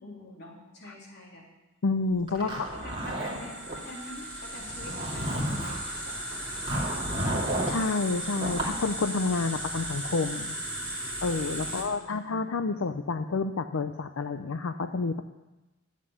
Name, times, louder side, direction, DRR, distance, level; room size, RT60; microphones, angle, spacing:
voice 1, 0.0-1.5 2.3-7.0 11.6-12.2, left 1 dB, 50° left, -3 dB, 3.6 m, -46 dB
voice 2, 1.8-2.6 7.7-10.6 11.2-15.2, left 3 dB, 75° left, 8 dB, 0.6 m, -29 dB
Zipper (clothing), 2.3-3.8 4.6-5.9 6.7-7.8 8.4-8.8, right 1 dB, 25° right, 2.5 m, -31 dB
sound 1, 2.7-11.8, right 1 dB, 5° left, 3.1 m, -36 dB
11.5 x 7.6 x 9.8 m, 1.1 s
head